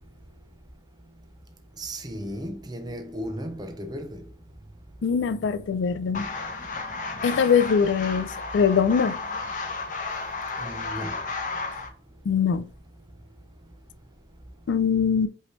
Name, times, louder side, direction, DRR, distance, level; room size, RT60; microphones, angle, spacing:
voice 1, 1.8-4.2 10.6-11.1, equal, 20° right, 0.7 m, -35 dB
voice 2, 5.0-6.3 7.2-9.2 12.3-12.7 14.7-15.3, left 6 dB, 85° left, 0.4 m, -22 dB
sound 1, 6.1-11.9, left 3 dB, 45° left, 0.8 m, -33 dB
5.5 x 3.1 x 3.1 m
head